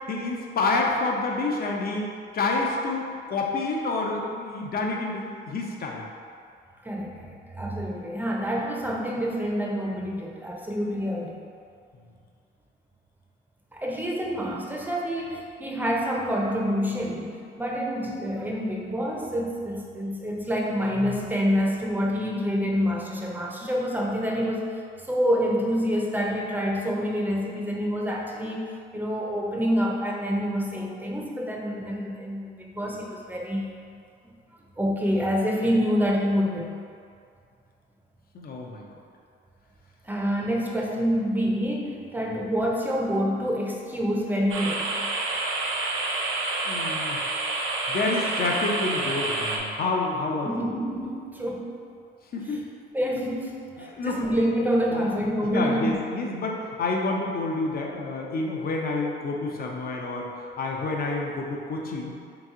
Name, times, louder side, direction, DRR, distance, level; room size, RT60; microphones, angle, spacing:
voice 1, 0.0-6.1 38.3-38.9 46.6-47.2 47.9-50.5 52.3-52.6 53.8-54.3 54.9-55.2 55.5-60.3 60.6-62.1, left 3 dB, 50° left, 0 dB, 0.6 m, -28 dB
voice 2, 6.8-11.4 13.7-24.7 25.1-33.8 34.2-34.3 34.8-36.7 40.0-44.9 50.4-51.8 52.5-52.6 52.9-56.0, equal, 10° right, -2 dB, 0.6 m, -27 dB
sound 1, 44.5-49.6, right 2 dB, 80° right, 0.6 m, -28 dB
3.5 x 3.0 x 3.7 m, 2.3 s
cardioid pair, 90°, 20 cm